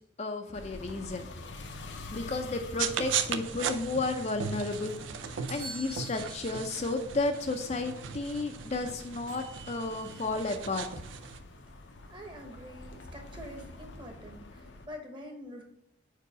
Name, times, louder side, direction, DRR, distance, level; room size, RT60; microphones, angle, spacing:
voice 1, 0.2-1.3 2.1-5.0 5.2-10.9, left 3 dB, 35° left, 5 dB, 0.5 m, -33 dB
sound 1, 0.5-14.9, left 2 dB, 75° left, 0.7 m, -48 dB
sound 2, 2.8-11.4, right 8 dB, 90° right, 0.5 m, -37 dB
sound 3, 5.5-7.0 7.6-7.7 9.3-10.4, right 3 dB, 50° right, 1.5 m, -47 dB
voice 2, 12.1-15.6, equal, 25° right, 3 dB, 1.0 m, -46 dB
4.9 x 4.7 x 4.9 m, 0.80 s
head